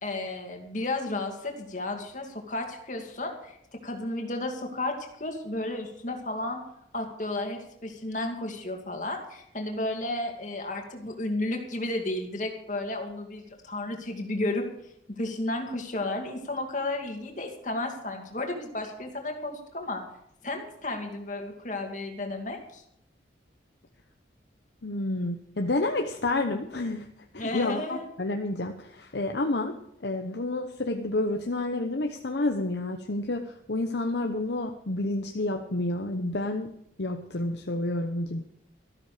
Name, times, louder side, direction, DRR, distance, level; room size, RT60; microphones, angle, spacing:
voice 1, 0.0-3.6 3.8-6.6 6.9-14.6 15.1-20.0 20.4-22.8 27.4-28.0, left 2 dB, 40° left, 3 dB, 2.5 m, -33 dB
voice 2, 24.8-27.1 27.3-29.7 30.0-36.7 37.0-38.4, left 2 dB, 60° left, 4 dB, 0.9 m, -29 dB
13.5 x 13.0 x 5.0 m, 0.75 s
head